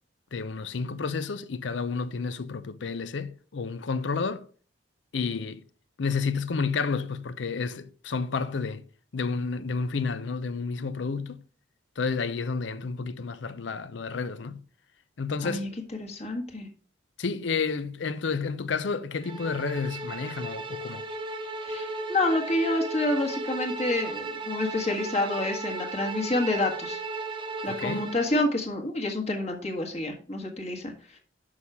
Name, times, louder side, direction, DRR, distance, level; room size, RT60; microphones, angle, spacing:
voice 1, 0.3-4.5 5.1-5.6 6.0-8.9 9.1-11.4 12.0-14.6 15.2-15.7 17.2-21.1 27.7-28.1, left 4 dB, 70° left, 0.5 m, -30 dB
voice 2, 16.0-16.7 21.7-27.0 27.6-30.9, left 2 dB, 35° left, 1.5 m, -28 dB
Bowed string instrument, 19.2-28.4, right 2 dB, 25° right, 0.9 m, -35 dB
6.3 x 5.6 x 4.8 m
head